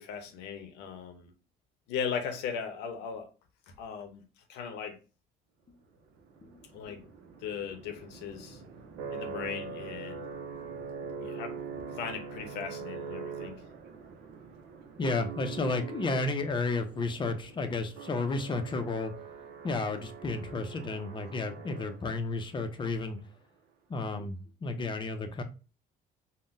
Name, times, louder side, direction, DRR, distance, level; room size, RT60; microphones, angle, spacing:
voice 1, 0.0-1.3 1.9-3.3 3.7-4.2 4.5-5.0 6.7-7.0 7.4-8.6 9.1-10.2 11.2-11.6 11.9-13.6, left 7 dB, 85° left, 0.7 m, -38 dB
sound 1, 6.2-22.4, right 5 dB, 85° right, 0.5 m, -43 dB
voice 2, 15.0-19.1 19.6-23.2 23.9-25.4, left 3 dB, 30° left, 0.5 m, -32 dB
3.6 x 2.1 x 2.5 m
cardioid pair, 110°, 17 cm